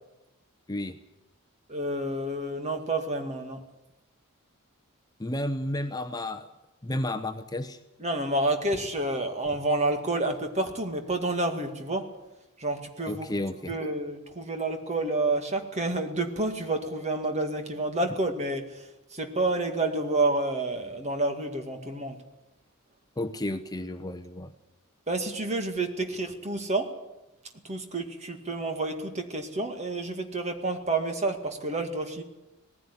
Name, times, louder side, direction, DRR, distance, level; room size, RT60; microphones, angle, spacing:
voice 1, 1.7-3.6 8.0-12.1 12.6-13.3 13.7-22.2 25.1-26.9 27.6-32.2, right 2 dB, 30° right, 5 dB, 2.2 m, -29 dB
voice 2, 5.2-6.5 6.8-7.8 13.1-13.8 23.2-24.5, left 1 dB, 20° left, 8 dB, 0.8 m, -32 dB
19.0 x 15.5 x 9.8 m, 0.98 s
head